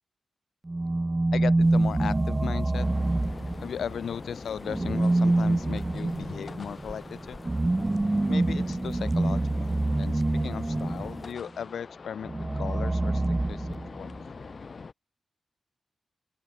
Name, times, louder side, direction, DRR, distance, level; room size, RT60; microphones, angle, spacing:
sound 1, 0.7-4.0 4.6-11.3 12.2-14.2, right 2 dB, 25° right, 0.3 m, -26 dB
voice 1, 1.3-2.9 3.6-7.4 8.3-13.2 13.5-14.2, left 8 dB, 90° left, 0.4 m, -37 dB
sound 2, 1.6-11.3, equal, 5° right, 3.3 m, -49 dB
sound 3, 2.7-14.9, left 4 dB, 55° left, 2.1 m, -43 dB
open air
cardioid pair, 70°, 0 cm